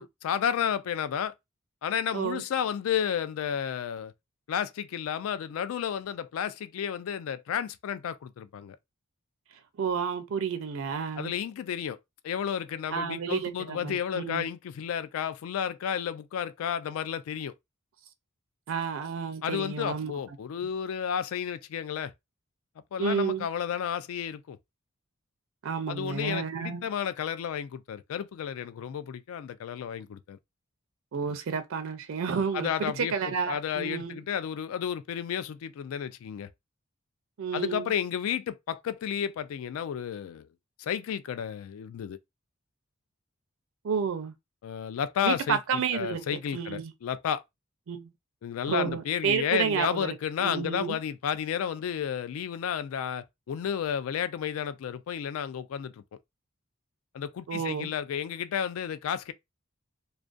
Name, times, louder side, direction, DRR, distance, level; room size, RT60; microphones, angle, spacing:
voice 1, 0.0-1.3 1.8-4.1 4.5-8.8 11.2-12.0 12.2-17.5 19.4-22.1 22.9-24.6 25.9-30.4 32.5-33.1 33.4-36.5 37.5-40.5 40.8-42.2 44.6-47.4 48.4-55.9 57.1-59.3, left 8 dB, 75° left, 0.3 m, -32 dB
voice 2, 9.8-11.3 12.9-14.4 18.7-20.1 23.0-23.5 25.6-26.9 31.1-34.2 37.4-37.9 43.8-44.3 45.2-46.2 46.5-46.9 47.9-48.1 48.7-50.1 50.4-51.0 57.5-57.9, right 6 dB, 65° right, 0.4 m, -30 dB
2.4 x 2.2 x 2.4 m
head